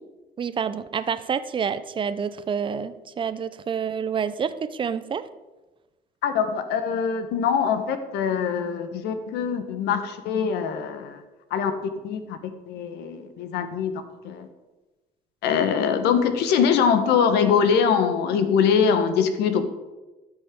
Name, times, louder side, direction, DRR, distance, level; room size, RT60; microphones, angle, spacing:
voice 1, 0.4-5.3, right 7 dB, 30° right, 13 dB, 0.5 m, -28 dB
voice 2, 6.2-11.2 11.5-11.7 12.0-12.4 12.7-13.9 14.2-14.5 15.4-19.7, left 7 dB, 85° left, 9 dB, 1.0 m, -23 dB
12.5 x 6.2 x 3.7 m, 1.1 s
cardioid pair, 110°, 17 cm